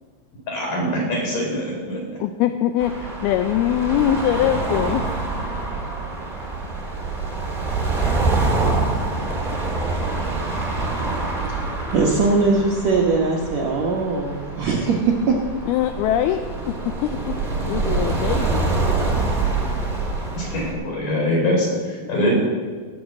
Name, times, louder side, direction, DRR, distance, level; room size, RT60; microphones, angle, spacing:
voice 1, 0.5-2.0 20.4-22.3, left 1 dB, 50° left, -2 dB, 5.4 m, -23 dB
voice 2, 2.2-5.1 15.7-17.4 17.7-18.7, left 11 dB, 85° left, 8 dB, 2.2 m, -22 dB
sound 1, 2.8-20.7, right 3 dB, 20° right, 1.2 m, -25 dB
voice 3, 11.9-15.4, right 4 dB, 90° right, 0 dB, 1.5 m, -20 dB
18.0 x 7.0 x 7.6 m, 1.5 s
omnidirectional pair, 5.0 m